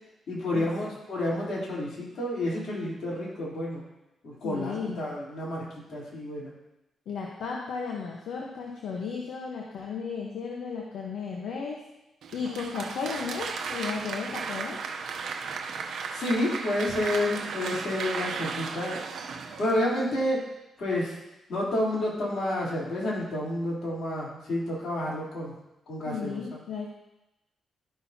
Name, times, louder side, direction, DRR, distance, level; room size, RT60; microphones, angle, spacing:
voice 1, 0.3-3.9 4.2-5.6 5.9-6.5 16.1-19.0 19.6-20.5 20.8-21.2 21.5-25.5 25.9-26.6, left 1 dB, 65° left, -6 dB, 3.4 m, -30 dB
voice 2, 4.4-5.1 7.1-11.8 12.3-14.8 26.1-26.9, left 5 dB, 80° left, -1 dB, 1.1 m, -34 dB
Applause, 12.2-20.3, right 5 dB, 75° right, 0.7 m, -35 dB
12.5 x 5.9 x 2.8 m, 0.92 s
cardioid pair, 70°, 0 cm